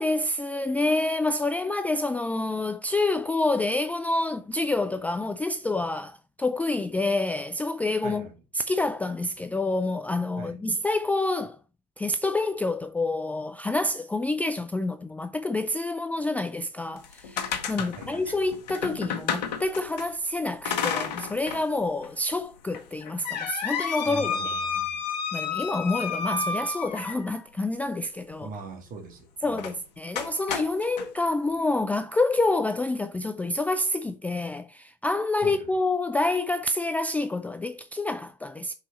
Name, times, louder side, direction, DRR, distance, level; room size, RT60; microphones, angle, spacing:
voice 1, 0.0-8.3 8.5-11.6 12.0-24.6 25.3-28.5 29.4-38.7, left 2 dB, 5° left, 0.4 m, -28 dB
voice 2, 8.0-8.4 10.4-10.6 17.8-18.4 24.0-25.0 28.4-29.7 35.4-35.7, right 3 dB, 40° right, 2.0 m, -41 dB
sound 1, 17.0-20.1 20.6-21.6 22.0-22.1 22.7-27.4 29.5-29.8 30.1-31.1, left 6 dB, 75° left, 1.3 m, -31 dB
5.6 x 4.1 x 5.2 m
hypercardioid pair, 95°, 21 cm